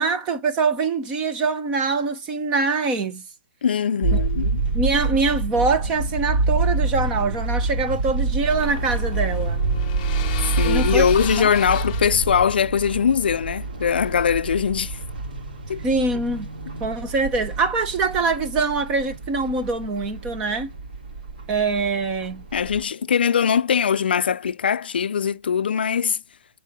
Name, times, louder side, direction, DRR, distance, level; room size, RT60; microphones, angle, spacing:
voice 1, 0.0-3.2 4.1-4.2 4.7-9.6 10.6-11.0 11.3-11.5 15.8-16.5 16.8-20.7 21.5-22.4, right 4 dB, 15° right, 0.6 m, -24 dB
voice 2, 3.6-4.6 10.6-15.0 15.7-15.8 22.5-26.2, left 7 dB, 75° left, 0.4 m, -21 dB
sound 1, 4.0-22.8, right 3 dB, 60° right, 2.6 m, -27 dB
sound 2, 7.9-13.4, left 10 dB, 20° left, 0.8 m, -36 dB
7.4 x 4.5 x 5.1 m
hypercardioid pair, 180°, 5 cm